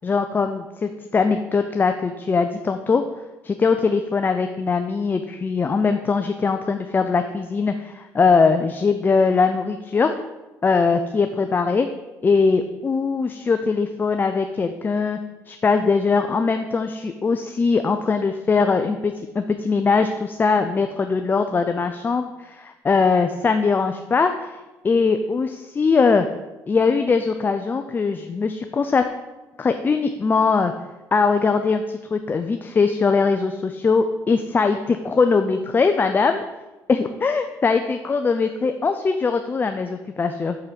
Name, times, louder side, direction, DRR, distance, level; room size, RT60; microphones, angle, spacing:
voice 1, 0.0-3.0 3.4-10.1 10.6-11.9 12.2-15.2 15.5-24.6 24.8-26.3 26.7-29.1 29.6-30.7 31.1-36.4 36.9-40.6, left 4 dB, 30° left, 7 dB, 0.5 m, -21 dB
6.1 x 5.6 x 5.1 m, 1.1 s
cardioid pair, 90°, 7 cm